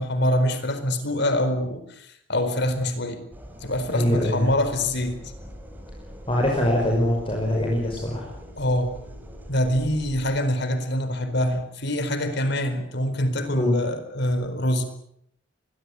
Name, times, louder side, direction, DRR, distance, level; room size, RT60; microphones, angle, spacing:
voice 1, 0.0-3.3 3.6-5.2 6.9-7.0 8.6-9.0 9.5-14.8, left 1 dB, 60° left, 10 dB, 4.4 m, -25 dB
sound 1, 3.3-10.4, equal, 10° right, 4.8 m, -42 dB
voice 2, 3.8-4.5 6.3-8.3 13.5-13.8, left 1 dB, 30° left, -1 dB, 5.7 m, -23 dB
24.5 x 22.0 x 8.5 m, 0.71 s
head